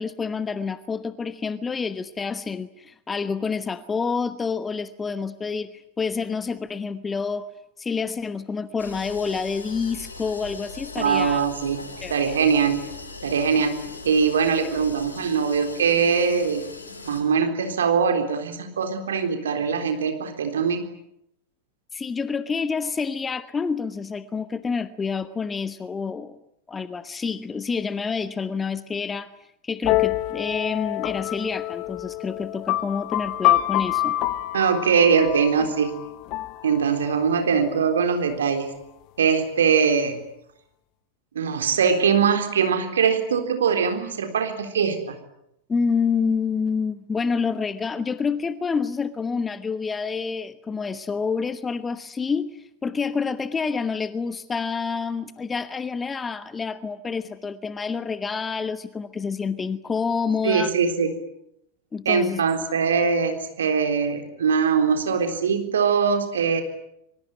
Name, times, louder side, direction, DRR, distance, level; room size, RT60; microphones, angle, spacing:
voice 1, 0.0-7.5 7.8-11.4 12.0-12.4 21.9-26.4 26.7-29.3 29.6-34.2 45.7-60.7 61.9-62.4, left 5 dB, 15° left, 14 dB, 1.1 m, -28 dB
sound 1, 8.8-17.2, left 4 dB, 75° left, 5.3 m, -40 dB
voice 2, 11.0-12.8 13.2-13.8 14.0-16.7 17.0-20.8 34.5-35.9 36.6-38.7 39.2-40.2 41.4-45.1 60.4-61.1 62.1-66.6, right 6 dB, 65° right, 6 dB, 3.8 m, -22 dB
sound 2, 29.8-37.4, left 15 dB, 40° left, 1.3 m, -26 dB
25.5 x 24.0 x 9.2 m, 0.80 s
figure-of-eight pair, 90°, 0 cm